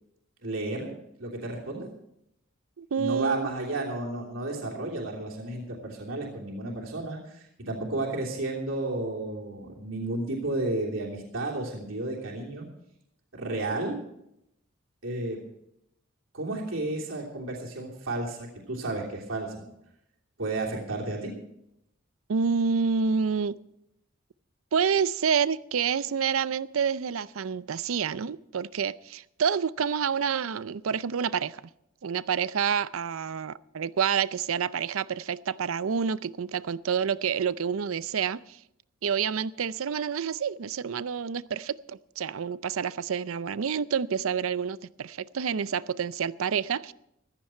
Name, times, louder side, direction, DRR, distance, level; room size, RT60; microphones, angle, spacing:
voice 1, 0.4-0.9 1.2-1.9 3.0-12.7 13.3-14.0 15.0-15.4 16.3-19.7 20.4-21.3, right 2 dB, 75° right, 3.1 m, -32 dB
voice 2, 2.8-3.5 22.3-23.6 24.7-31.6 32.0-38.6 39.0-46.9, right 6 dB, 90° right, 0.5 m, -28 dB
15.0 x 13.5 x 4.5 m
head